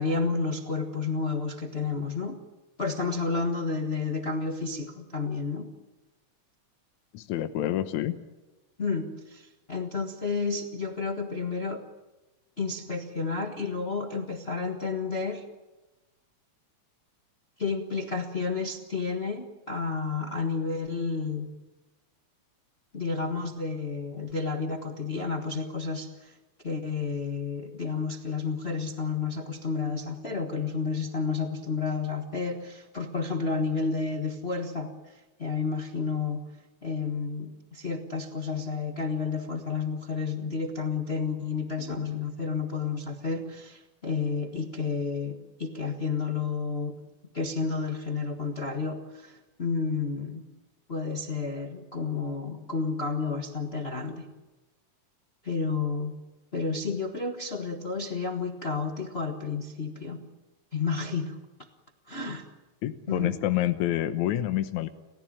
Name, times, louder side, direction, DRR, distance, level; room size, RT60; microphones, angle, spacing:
voice 1, 0.0-2.4 2.8-5.7 8.8-11.8 12.6-15.4 17.6-21.5 22.9-26.4 26.6-36.5 36.8-47.0 47.3-50.4 50.9-54.3 55.4-56.1 56.5-60.2 60.7-61.4 62.1-62.5 63.1-63.4, left 4 dB, 35° left, 4 dB, 1.1 m, -31 dB
voice 2, 7.1-8.2 62.8-64.9, left 13 dB, 80° left, 10 dB, 2.3 m, -27 dB
30.0 x 16.0 x 8.9 m, 1.1 s
omnidirectional pair, 3.3 m